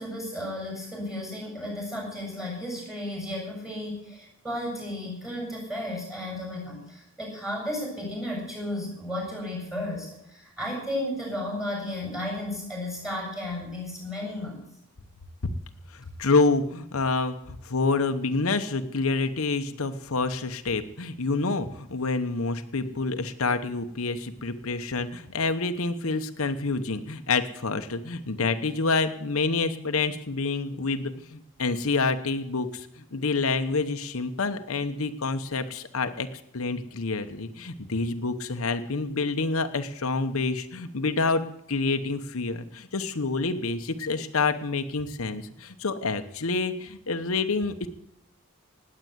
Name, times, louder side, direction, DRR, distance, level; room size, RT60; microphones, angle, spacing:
voice 1, 0.0-14.6, left 1 dB, ahead, 0 dB, 7.1 m, -34 dB
voice 2, 15.9-36.3 36.5-41.4 41.7-47.9, left 3 dB, 75° left, 8 dB, 1.0 m, -27 dB
18.5 x 8.8 x 7.9 m, 0.77 s
head